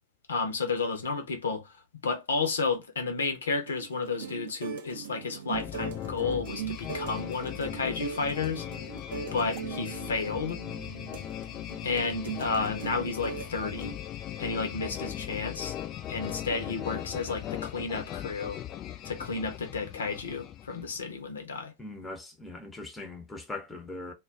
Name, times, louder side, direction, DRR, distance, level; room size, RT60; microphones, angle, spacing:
voice 1, 0.3-8.7 9.3-10.6 11.8-14.0 14.4-15.7 16.1-18.6 19.0-21.7, left 4 dB, 70° left, 0.6 m, -32 dB
sound 1, 3.7-14.0, right 7 dB, 60° right, 0.5 m, -40 dB
sound 2, 5.5-21.0, left 11 dB, 30° left, 0.3 m, -38 dB
voice 2, 21.8-24.1, left 2 dB, 10° left, 0.7 m, -40 dB
2.2 x 2.2 x 3.5 m
figure-of-eight pair, 90°, 0 cm